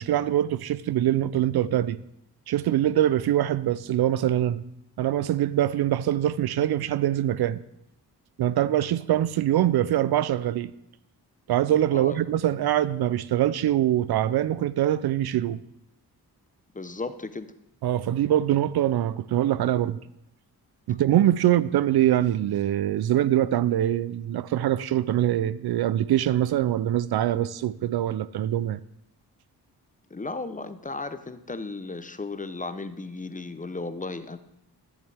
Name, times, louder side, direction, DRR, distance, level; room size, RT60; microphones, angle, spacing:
voice 1, 0.0-2.0 2.5-4.6 5.0-7.6 8.4-10.7 11.5-15.6 17.8-20.0 20.9-28.8, right 12 dB, 65° right, 0.5 m, -23 dB
voice 2, 16.7-17.5 30.1-34.4, left 3 dB, 20° left, 0.7 m, -35 dB
13.5 x 7.3 x 3.4 m
cardioid pair, 55°, 41 cm